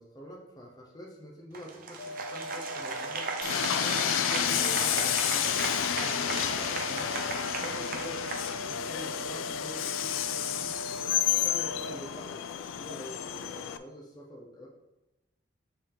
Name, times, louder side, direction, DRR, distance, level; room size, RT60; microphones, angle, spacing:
voice 1, 0.0-3.3 3.7-7.2 7.5-10.8 11.3-14.7, equal, 20° left, 0 dB, 0.9 m, -46 dB
Applause, 1.5-9.1, right 4 dB, 45° right, 0.6 m, -37 dB
sound 1, 2.0-12.0, equal, 65° left, 0.9 m, -41 dB
Train, 3.4-13.8, left 10 dB, 85° left, 0.3 m, -30 dB
6.9 x 3.6 x 3.8 m, 1.0 s
head